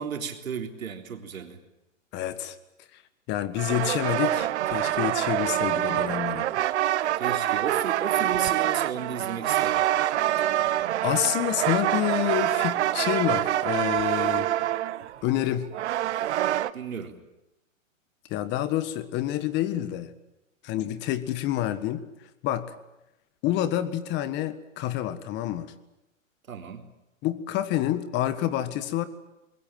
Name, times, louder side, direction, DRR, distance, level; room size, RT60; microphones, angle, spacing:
voice 1, 0.0-1.6 7.2-9.9 16.7-17.2 26.5-26.9, right 7 dB, 85° right, 4 dB, 3.8 m, -34 dB
voice 2, 2.1-2.5 2.9-3.0 3.3-6.5 10.4-10.6 11.0-14.5 15.2-15.7 18.3-20.1 20.6-22.0 22.4-22.7 23.4-25.7 27.2-29.0, left 13 dB, 25° left, 13 dB, 1.5 m, -28 dB
sound 1, 3.6-16.7, right 13 dB, 55° right, 1.1 m, -26 dB
25.0 x 21.5 x 9.1 m, 0.92 s
hypercardioid pair, 145°, 40 cm